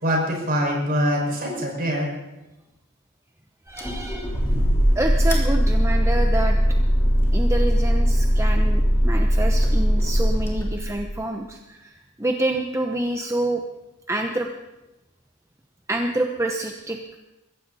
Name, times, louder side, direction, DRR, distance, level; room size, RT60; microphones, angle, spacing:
voice 1, 0.0-2.1, equal, 45° right, 0 dB, 5.6 m, -23 dB
voice 2, 3.7-4.3 5.0-6.6 7.3-13.6 14.1-14.5 15.9-17.2, right 1 dB, 15° right, 3 dB, 0.9 m, -27 dB
sound 1, 3.8-11.2, equal, 10° left, 3.4 m, -20 dB
22.0 x 16.0 x 4.2 m, 1.0 s
head